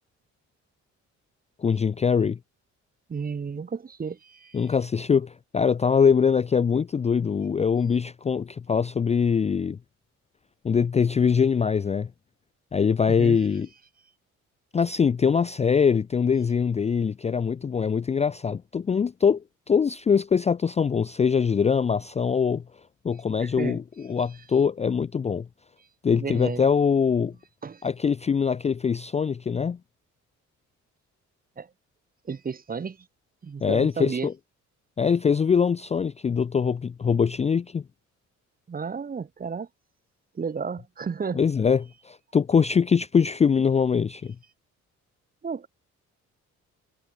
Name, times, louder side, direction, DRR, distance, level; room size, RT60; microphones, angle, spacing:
voice 1, 1.6-2.4 4.5-9.8 10.6-12.1 12.7-13.7 14.7-22.6 23.0-25.5 26.0-27.3 27.8-29.8 33.6-34.3 35.0-37.8 41.3-44.4, left 6 dB, 25° left, 0.4 m, -23 dB
voice 2, 3.1-4.6 13.2-13.4 23.4-23.8 26.1-26.7 27.6-27.8 31.6-31.7 32.2-33.0 33.4-34.3 38.7-39.7 40.3-41.4 45.4-45.7, right 5 dB, 30° right, 1.0 m, -32 dB
cardioid pair, 90°, 30 cm